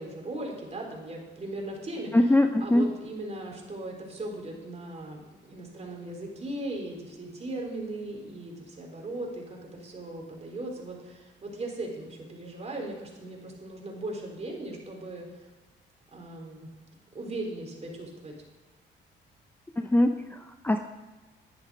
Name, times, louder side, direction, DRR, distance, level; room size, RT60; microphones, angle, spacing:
voice 1, 0.0-2.1 2.6-5.2 5.5-15.4 16.1-16.7 17.1-18.3, right 2 dB, 35° right, 0 dB, 3.8 m, -38 dB
voice 2, 2.1-2.9 19.8-20.9, left 1 dB, 10° left, 6 dB, 0.6 m, -23 dB
11.0 x 10.0 x 4.9 m, 1.2 s
cardioid pair, 90°, 20 cm